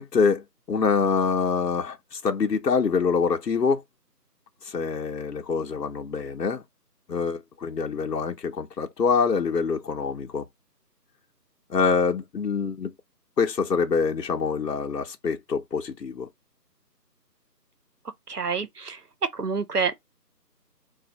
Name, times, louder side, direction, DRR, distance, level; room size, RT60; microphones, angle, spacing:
voice 1, 0.0-3.8 4.6-6.6 7.1-10.5 11.7-12.9 13.4-16.3, left 5 dB, 70° left, 0.9 m, -25 dB
voice 2, 18.3-19.0 19.3-19.9, right 5 dB, 70° right, 0.9 m, -27 dB
3.4 x 2.4 x 4.1 m
figure-of-eight pair, 170°, 50 cm